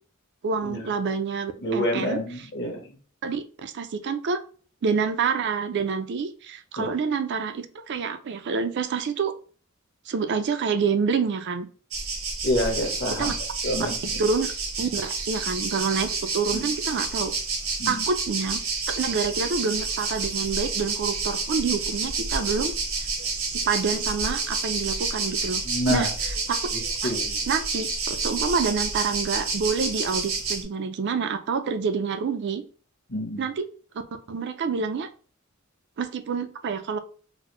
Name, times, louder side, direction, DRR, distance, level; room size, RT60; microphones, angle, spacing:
voice 1, 0.4-2.2 3.2-4.4 4.8-9.3 10.1-11.7 13.2-13.3 14.2-14.5 14.8-17.3 17.9-18.6 18.9-22.7 23.3-25.6 25.9-26.1 26.5-26.6 27.0-27.1 27.5-32.6 33.4-33.7 34.3-35.1 36.0-37.0, right 5 dB, 55° right, 8 dB, 0.4 m, -27 dB
voice 2, 1.6-3.0 6.8-6.9 12.4-13.3 13.6-13.9 16.5-16.6 17.8-18.0 25.6-26.1 26.7-27.4 33.1-33.4, equal, 55° left, 2 dB, 1.1 m, -27 dB
sound 1, 11.9-30.6, right 4 dB, 75° right, 0.9 m, -29 dB
3.9 x 2.0 x 2.9 m, 0.40 s
head